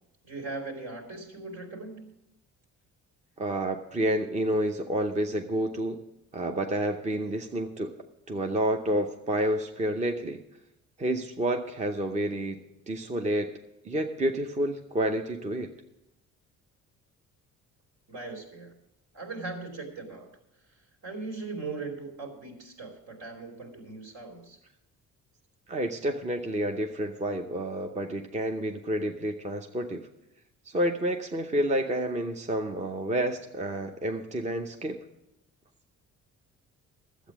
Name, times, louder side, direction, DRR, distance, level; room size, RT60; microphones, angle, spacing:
voice 1, 0.2-2.1 18.1-18.7 19.1-20.3 21.0-24.6, right 3 dB, 65° right, 3 dB, 3.1 m, -39 dB
voice 2, 3.4-6.0 6.3-7.9 8.3-10.4 11.0-12.6 12.9-13.5 13.8-15.7 25.7-30.1 30.7-35.0, right 1 dB, 20° right, 4 dB, 0.7 m, -29 dB
12.0 x 8.2 x 6.0 m, 0.87 s
cardioid pair, 110°, 31 cm